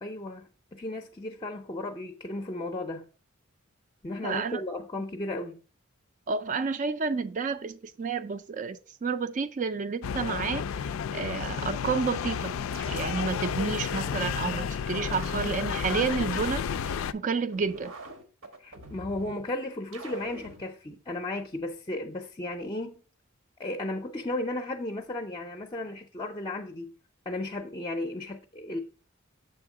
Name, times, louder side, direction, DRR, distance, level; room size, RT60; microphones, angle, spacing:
voice 1, 0.0-3.1 4.0-5.6 18.6-23.0 23.6-26.9 27.3-28.8, left 2 dB, 25° left, 0.5 m, -35 dB
voice 2, 4.2-4.6 6.3-10.6 11.1-12.5 12.9-17.9, right 5 dB, 40° right, 0.4 m, -30 dB
sound 1, 10.0-17.1, left 7 dB, 90° left, 0.4 m, -31 dB
sound 2, 12.1-13.4 13.9-14.6 15.1-17.0 17.5-19.4 19.9-20.6, right 1 dB, 85° right, 1.1 m, -45 dB
6.8 x 3.6 x 4.8 m
head